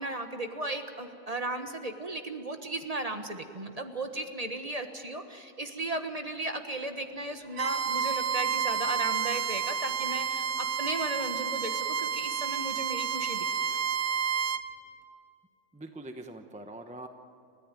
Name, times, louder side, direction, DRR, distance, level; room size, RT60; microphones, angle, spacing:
voice 1, 0.0-13.5, right 2 dB, 30° right, 6 dB, 1.3 m, -35 dB
Bowed string instrument, 7.5-14.6, right 7 dB, 65° right, 1.1 m, -30 dB
voice 2, 15.7-17.1, right 1 dB, 5° right, 5 dB, 0.9 m, -43 dB
29.5 x 14.0 x 9.1 m, 2.7 s
omnidirectional pair, 1.4 m